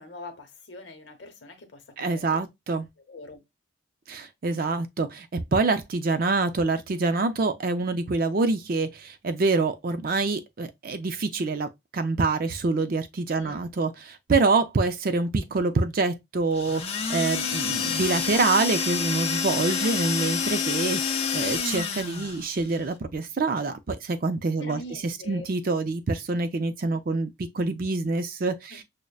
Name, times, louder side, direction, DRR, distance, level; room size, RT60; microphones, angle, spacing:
voice 1, 0.0-2.4 3.1-3.4 13.3-13.7 19.8-20.4 24.6-25.5 28.7-28.8, left 2 dB, 60° left, 0.9 m, -43 dB
voice 2, 2.0-2.9 4.1-16.8 17.1-28.8, right 3 dB, 45° right, 0.4 m, -26 dB
sound 1, 16.5-22.4, left 6 dB, 30° left, 0.5 m, -28 dB
6.3 x 2.1 x 2.3 m
head